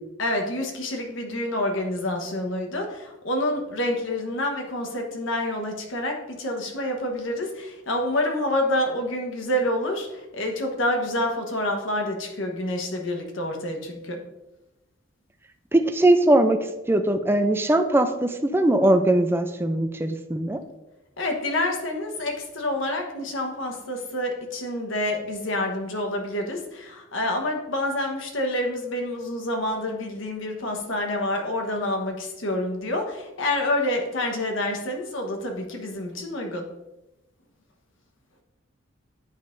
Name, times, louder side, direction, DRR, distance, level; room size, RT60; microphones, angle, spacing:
voice 1, 0.2-10.1 10.3-14.2 21.2-36.6, left 1 dB, 80° left, 3 dB, 1.1 m, -28 dB
voice 2, 15.7-16.6 16.9-20.6, right 1 dB, 10° right, 7 dB, 0.4 m, -20 dB
9.2 x 5.4 x 2.6 m, 0.98 s
head